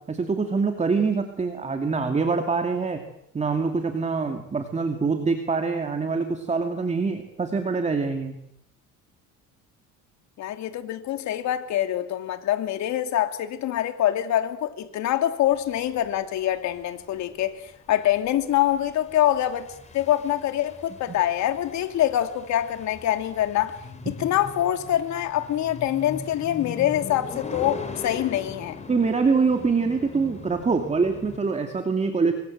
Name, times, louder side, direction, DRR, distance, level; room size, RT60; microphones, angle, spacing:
voice 1, 0.0-3.0 3.3-8.4 28.9-32.3, right 4 dB, 20° right, 2.6 m, -24 dB
voice 2, 10.4-19.7 19.9-23.8 24.0-28.8, left 12 dB, 65° left, 2.9 m, -25 dB
sound 1, 15.5-31.4, left 4 dB, 20° left, 4.2 m, -41 dB
27.0 x 24.5 x 7.9 m
cardioid pair, 130°, 31 cm